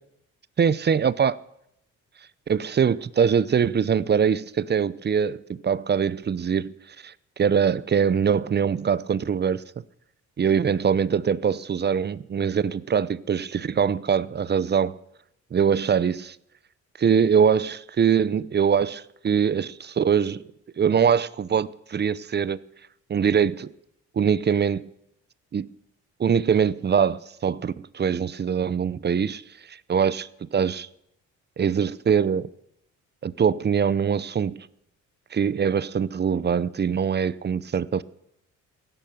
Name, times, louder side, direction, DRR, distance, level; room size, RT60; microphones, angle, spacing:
voice 1, 0.6-1.4 2.5-6.7 7.0-9.6 10.4-15.0 15.5-16.4 17.0-20.4 20.8-22.6 23.1-23.7 24.1-24.9 25.5-25.7 26.2-29.4 29.7-30.9 31.6-32.5 33.2-34.7 35.3-38.0, right 7 dB, 35° right, 0.7 m, -23 dB
16.0 x 11.0 x 7.7 m
cardioid pair, 90°, 30 cm